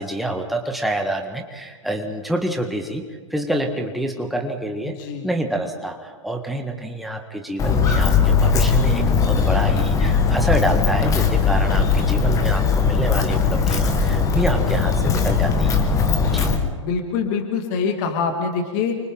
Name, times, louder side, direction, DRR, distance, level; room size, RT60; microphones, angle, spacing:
voice 1, 0.0-3.0 3.3-5.0 5.2-15.9 16.2-16.5, right 1 dB, ahead, 3 dB, 1.7 m, -27 dB
voice 2, 4.8-5.3 16.0-19.0, left 5 dB, 35° left, 3 dB, 2.7 m, -25 dB
Walk footsteps, 7.6-16.6, left 5 dB, 20° left, 1.9 m, -19 dB
30.0 x 24.0 x 3.9 m, 1.4 s
figure-of-eight pair, 105°, 17 cm